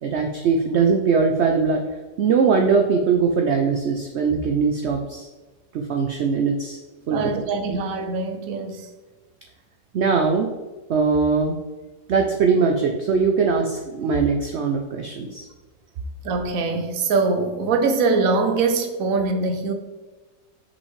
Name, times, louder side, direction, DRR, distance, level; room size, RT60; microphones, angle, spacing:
voice 1, 0.0-1.8 2.2-5.3 5.7-6.8 7.1-7.2 7.7-7.8 9.9-10.5 10.9-11.6 12.1-15.5, right 5 dB, 85° right, 3 dB, 0.6 m, -21 dB
voice 2, 7.1-8.9 16.2-19.7, right 4 dB, 65° right, 6 dB, 1.0 m, -23 dB
5.7 x 5.4 x 3.1 m, 1.3 s
omnidirectional pair, 1.8 m